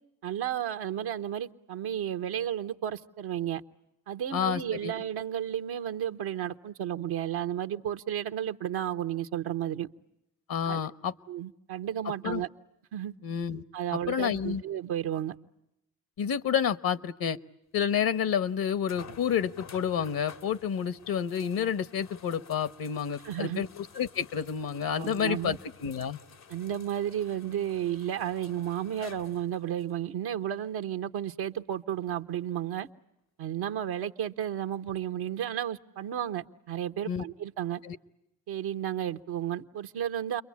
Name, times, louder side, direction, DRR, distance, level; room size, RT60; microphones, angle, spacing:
voice 1, 0.2-3.6 4.1-9.9 10.7-10.8 11.3-12.5 12.9-13.1 13.7-15.3 23.2-23.6 25.0-25.6 26.5-32.9 33.4-37.8 38.5-40.4, right 10 dB, 85° right, 1.0 m, -33 dB
voice 2, 4.3-4.9 10.5-11.1 12.2-12.4 13.2-13.6 13.9-14.6 16.2-17.4 17.7-26.2 37.1-37.2 37.8-38.0, left 8 dB, 70° left, 1.1 m, -29 dB
sound 1, 18.9-29.9 30.6-30.7 34.2-34.3, left 6 dB, 85° left, 1.7 m, -52 dB
30.0 x 23.0 x 8.5 m
supercardioid pair, 45°, 37 cm